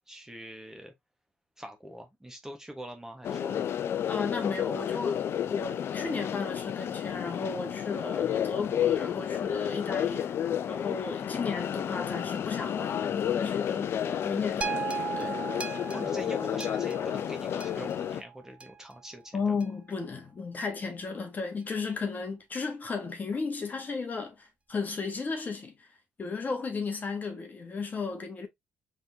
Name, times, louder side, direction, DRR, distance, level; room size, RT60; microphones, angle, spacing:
voice 1, 0.1-0.9 1.6-3.6 15.9-19.6, right 1 dB, 10° right, 1.2 m, -44 dB
sound 1, 3.2-18.2, left 9 dB, 55° left, 0.4 m, -31 dB
voice 2, 4.1-10.3 10.7-15.4 19.3-25.9 26.2-28.5, left 4 dB, 35° left, 1.4 m, -34 dB
sound 2, 14.6-18.9 19.6-19.7, right 7 dB, 25° right, 0.7 m, -37 dB
4.2 x 3.6 x 2.7 m
hypercardioid pair, 60°, 5 cm